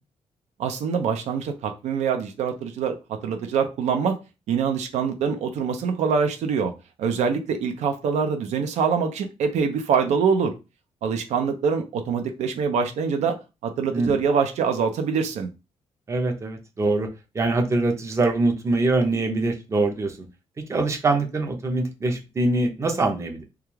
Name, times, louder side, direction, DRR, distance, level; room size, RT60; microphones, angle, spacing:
voice 1, 0.6-4.2 4.5-6.7 7.0-10.5 11.0-13.4 13.6-15.5, right 6 dB, 80° right, 5 dB, 0.4 m, -24 dB
voice 2, 16.1-17.1 17.3-20.1 20.7-23.4, right 2 dB, 25° right, 3 dB, 0.5 m, -23 dB
2.3 x 2.3 x 3.0 m, 0.28 s
cardioid pair, 135°, 12 cm